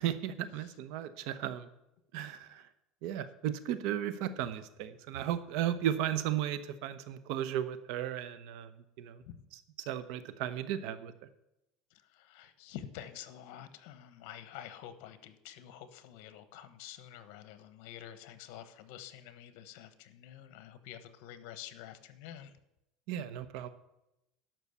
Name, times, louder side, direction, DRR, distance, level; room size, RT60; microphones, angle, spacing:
voice 1, 0.0-1.7 2.1-2.6 3.0-8.7 9.0-9.2 9.9-11.1 23.1-23.7, right 11 dB, 70° right, 12 dB, 1.0 m, -35 dB
voice 2, 11.9-22.5, left 11 dB, 70° left, 12 dB, 1.1 m, -48 dB
12.0 x 5.7 x 7.0 m, 0.87 s
cardioid pair, 140°, 0 cm